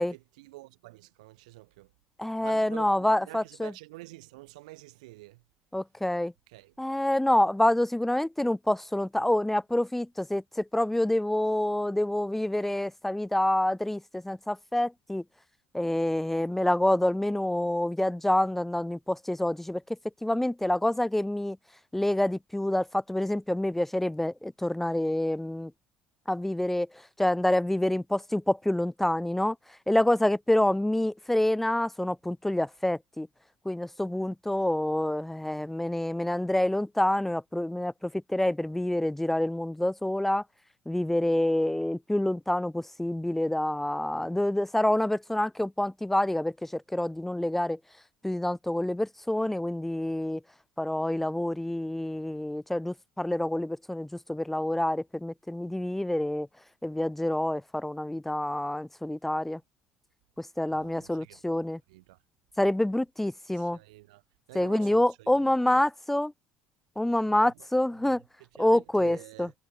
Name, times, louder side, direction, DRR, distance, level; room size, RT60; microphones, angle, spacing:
voice 1, 0.1-1.9 2.4-5.4 6.5-6.7 60.7-61.6 61.9-62.2 63.5-64.2 64.5-65.4 65.8-65.9 67.3-67.7 68.0-68.2 68.5-69.5, right 21 dB, 90° right, 5.2 m, -48 dB
voice 2, 2.2-3.7 5.7-6.3 6.8-15.2 15.7-19.8 20.2-21.6 21.9-25.7 26.3-26.9 27.2-29.6 29.9-33.3 33.6-40.4 40.9-47.8 48.2-50.4 50.8-56.5 56.8-59.6 60.4-61.8 62.6-63.8 64.5-66.3 67.0-68.2 68.6-69.5, left 1 dB, 5° left, 0.8 m, -27 dB
supercardioid pair, 80°, 4 cm